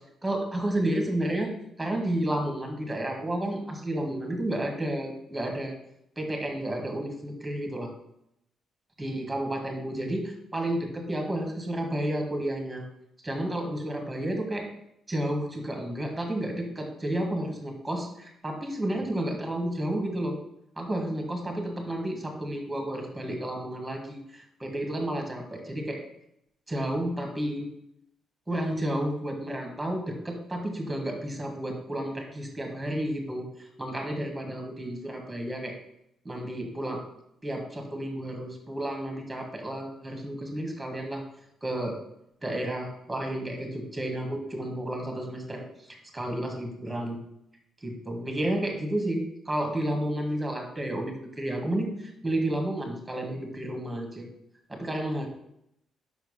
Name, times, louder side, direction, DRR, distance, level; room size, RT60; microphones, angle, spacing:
voice 1, 0.2-1.5 1.8-5.7 6.2-7.9 9.0-12.8 13.2-14.7 15.1-20.4 20.8-26.0 26.7-27.7 28.5-35.7 36.3-37.0 37.4-41.2 41.6-42.0 42.4-45.6 45.9-47.2 47.8-54.3 54.7-55.3, right 1 dB, 10° right, 3 dB, 1.8 m, -31 dB
5.5 x 4.6 x 5.6 m, 0.78 s
cardioid pair, 90°, 0 cm